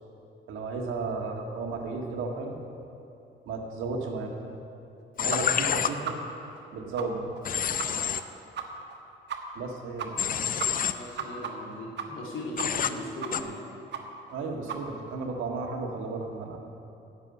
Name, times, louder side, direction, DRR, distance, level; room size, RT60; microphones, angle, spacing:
voice 1, 0.5-2.5 3.5-4.6 5.2-6.2 6.7-7.3 9.6-10.1 14.3-16.6, right 3 dB, 90° right, 2 dB, 1.6 m, -34 dB
Human voice / Train, 5.2-5.9 7.5-8.2 10.2-10.9 12.6-12.9 13.3-13.4, left 8 dB, 45° left, 0.6 m, -27 dB
sound 1, 5.3-5.4 5.7-5.8 6.0-6.1 6.5-6.6 7.0-7.1 7.3-7.4 7.8-7.9 8.2-8.3 8.5-8.6 8.9-9.0 9.3-9.4 9.7-9.8 10.0-10.3 10.6-12.3 12.6-12.9 13.2-13.6 13.9-14.0 14.3-14.4 14.7-14.8, right 8 dB, 60° right, 1.3 m, -35 dB
voice 2, 10.9-13.6, left 1 dB, 90° left, -3 dB, 3.0 m, -38 dB
11.0 x 7.4 x 8.9 m, 2.9 s
cardioid pair, 90°, 20 cm